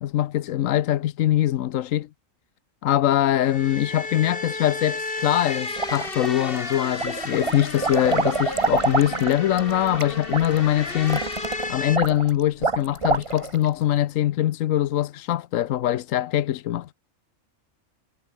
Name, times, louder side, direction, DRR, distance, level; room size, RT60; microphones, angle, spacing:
voice 1, 0.0-2.1 2.8-11.4 11.7-16.9, left 12 dB, 80° left, 1.1 m, -23 dB
sound 1, 3.4-12.0, left 3 dB, 45° left, 3.1 m, -33 dB
sound 2, 5.8-6.6 6.9-13.7, right 4 dB, 25° right, 0.9 m, -27 dB
omnidirectional pair, 1.4 m